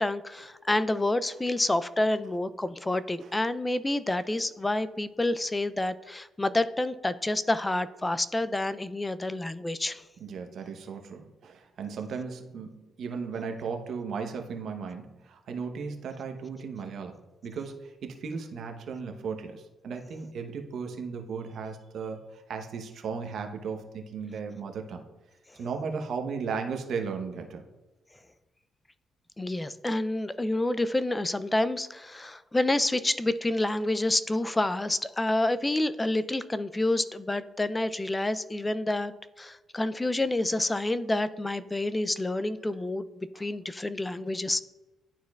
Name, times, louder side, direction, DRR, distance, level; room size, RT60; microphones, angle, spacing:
voice 1, 0.0-10.0 29.4-44.6, left 2 dB, 15° left, 14 dB, 0.3 m, -28 dB
voice 2, 10.2-25.0 25.5-27.7 43.3-43.4, right 5 dB, 65° right, 5 dB, 0.8 m, -36 dB
11.5 x 4.3 x 2.3 m, 1.1 s
cardioid pair, 90°, 0 cm